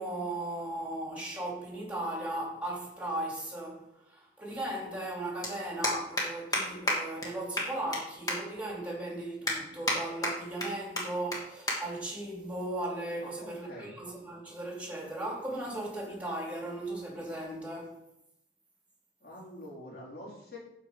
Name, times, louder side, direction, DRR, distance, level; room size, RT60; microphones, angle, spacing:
voice 1, 0.0-17.9, right 1 dB, 10° right, 2.8 m, -37 dB
sound 1, 5.1-5.2 5.4-5.5 5.8-6.2 6.5-6.6 6.9-7.0 7.2-7.3 7.6-8.0 8.3-8.4 8.8-8.9 9.5-10.0 10.2-10.7 11.0-11.1 11.3-11.4 11.7-11.8 12.1-12.3 13.1-13.3, left 1 dB, 20° left, 2.0 m, -30 dB
voice 2, 13.2-14.0 19.2-20.6, left 1 dB, 55° left, 4.0 m, -46 dB
13.0 x 4.9 x 5.2 m
head